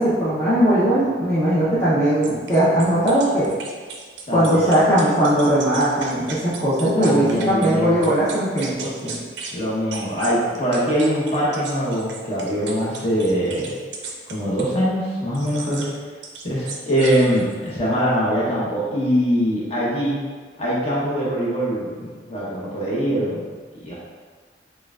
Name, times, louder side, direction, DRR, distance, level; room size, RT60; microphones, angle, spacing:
voice 1, 0.0-3.5 4.3-9.2, right 1 dB, 15° left, -12 dB, 0.8 m, -19 dB
sound 1, 2.2-7.7 8.0-9.6 9.9-14.8 15.3-15.9 16.2-17.7, right 4 dB, 75° right, 0.5 m, -36 dB
voice 2, 4.3-4.8 7.0-8.1 9.5-13.8 14.3-15.9 16.4-20.2 20.6-23.4 23.8-23.9, equal, 35° left, -8 dB, 1.1 m, -23 dB
6.5 x 2.3 x 2.5 m, 1.5 s
head